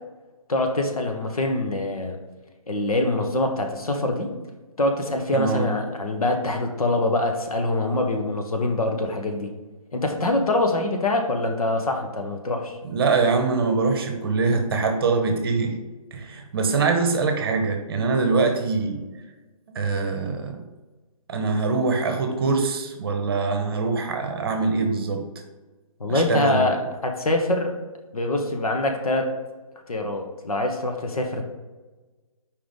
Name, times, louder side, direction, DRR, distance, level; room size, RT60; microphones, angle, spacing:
voice 1, 0.5-2.2 2.7-4.3 4.8-9.5 9.9-12.8 26.0-27.7 28.1-29.3 29.9-31.4, left 2 dB, 75° left, 4 dB, 1.2 m, -24 dB
voice 2, 5.3-5.7 12.8-15.8 16.1-19.0 19.7-20.6 21.3-25.2 26.1-26.7, right 4 dB, 40° right, 5 dB, 0.8 m, -23 dB
4.9 x 3.7 x 5.1 m, 1.2 s
hypercardioid pair, 155°, 18 cm